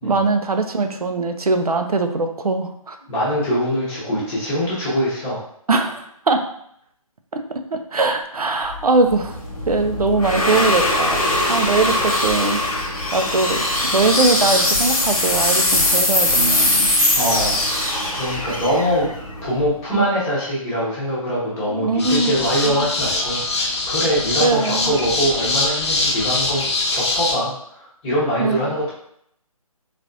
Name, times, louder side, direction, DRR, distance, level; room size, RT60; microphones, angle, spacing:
voice 1, 0.0-3.0 5.7-6.5 7.3-9.4 9.7-12.6 13.1-13.7 13.9-16.9 19.9-20.1 21.8-22.3 24.4-25.0 28.4-28.6, right 3 dB, 85° right, 6 dB, 0.5 m, -21 dB
voice 2, 3.1-5.4 17.1-17.7 18.1-19.1 19.4-26.6 26.9-28.9, equal, 10° left, -7 dB, 0.7 m, -23 dB
sound 1, 8.7-19.9, left 1 dB, 75° left, 1.1 m, -21 dB
sound 2, 22.0-27.3, left 2 dB, 50° left, 0.6 m, -23 dB
3.4 x 2.5 x 2.5 m, 0.70 s
figure-of-eight pair, 145°, 19 cm